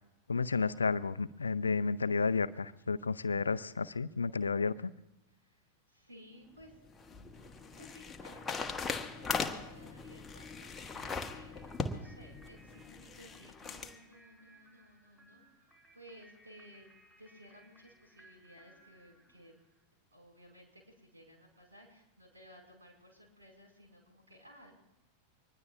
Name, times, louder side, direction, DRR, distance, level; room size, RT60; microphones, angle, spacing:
voice 1, 0.3-4.9, left 4 dB, 75° left, 15 dB, 0.5 m, -32 dB
voice 2, 5.3-16.9 17.2-19.5 20.1-24.7, equal, 80° right, 0 dB, 5.3 m, -58 dB
sound 1, 6.6-13.9, left 4 dB, 15° left, 1.1 m, -40 dB
sound 2, 11.5-19.8, right 1 dB, 15° right, 5.6 m, -63 dB
24.0 x 20.0 x 2.5 m, 0.94 s
figure-of-eight pair, 90°, 0 cm